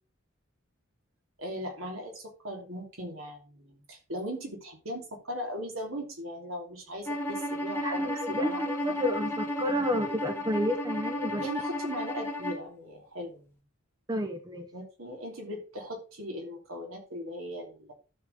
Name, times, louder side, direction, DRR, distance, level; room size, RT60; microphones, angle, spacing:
voice 1, 1.4-8.6 11.4-13.6 14.7-17.9, equal, 75° right, 3.3 m, -39 dB
Bowed string instrument, 7.1-12.7, left 1 dB, 10° left, 1.3 m, -33 dB
voice 2, 7.8-11.4 14.1-14.7, equal, 20° right, 0.7 m, -30 dB
12.5 x 6.6 x 3.5 m
head